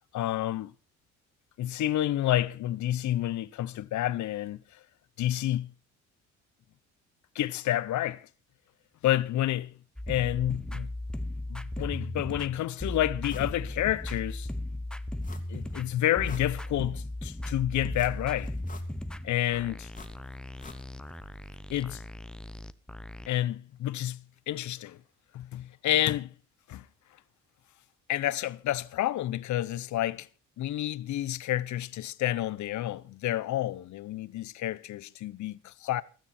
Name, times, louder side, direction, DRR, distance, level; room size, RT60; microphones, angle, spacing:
voice 1, 0.1-0.7 1.6-4.8 5.2-5.7 7.3-8.3 9.0-9.7 10.1-10.9 11.5-14.5 15.5-18.5 19.2-19.9 21.7-22.0 23.3-25.0 25.3-26.3 26.7-26.9 28.1-30.3 30.6-36.0, left 13 dB, 70° left, 0.8 m, -29 dB
sound 1, 10.0-23.3, left 1 dB, 5° left, 0.8 m, -37 dB
sound 2, 13.3-13.6 14.0-14.1 15.2-15.7 16.1-17.0 17.9-19.2 19.9-21.2 21.4-21.5, left 3 dB, 25° left, 2.3 m, -48 dB
16.0 x 13.0 x 4.2 m
cardioid pair, 90°, 30 cm